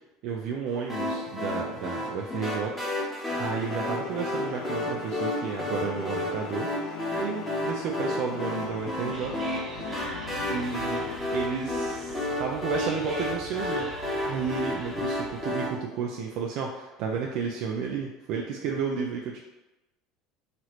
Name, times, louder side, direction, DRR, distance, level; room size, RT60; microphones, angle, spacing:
voice 1, 0.2-9.3 10.5-11.0 11.3-19.4, right 6 dB, 65° right, -1 dB, 0.4 m, -32 dB
sound 1, 0.9-15.7, left 1 dB, 5° left, 1.0 m, -32 dB
sound 2, 3.3-11.2, left 8 dB, 80° left, 0.3 m, -40 dB
Whispering, 8.7-15.6, right 2 dB, 30° right, 0.7 m, -42 dB
3.0 x 2.4 x 2.9 m, 1.0 s
supercardioid pair, 95°, 0 cm